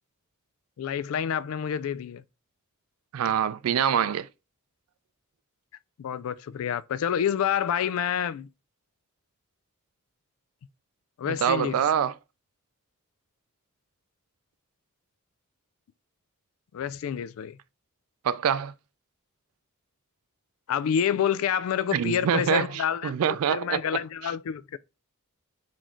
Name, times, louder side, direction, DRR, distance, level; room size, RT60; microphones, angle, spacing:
voice 1, 0.8-2.2 6.0-8.5 11.2-11.8 16.7-17.6 20.7-24.8, left 8 dB, 70° left, 0.3 m, -28 dB
voice 2, 3.1-4.3 11.3-12.1 18.2-18.7 21.9-24.0, right 8 dB, 80° right, 0.3 m, -25 dB
4.0 x 2.6 x 3.0 m
head